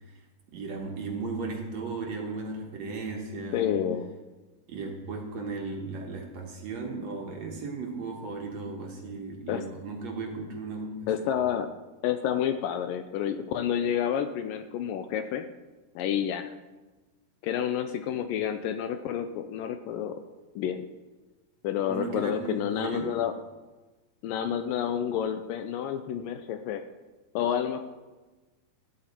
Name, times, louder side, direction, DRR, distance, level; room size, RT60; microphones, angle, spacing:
voice 1, 0.5-3.7 4.7-11.1 21.9-23.2, right 3 dB, 60° right, 1 dB, 2.0 m, -36 dB
voice 2, 3.5-4.1 9.5-9.6 11.1-11.7 12.0-15.5 16.0-16.5 17.4-20.2 20.6-20.9 21.6-23.3 24.2-26.8 27.4-27.8, left 9 dB, 80° left, 8 dB, 2.0 m, -29 dB
14.5 x 12.0 x 4.4 m, 1.2 s
omnidirectional pair, 4.5 m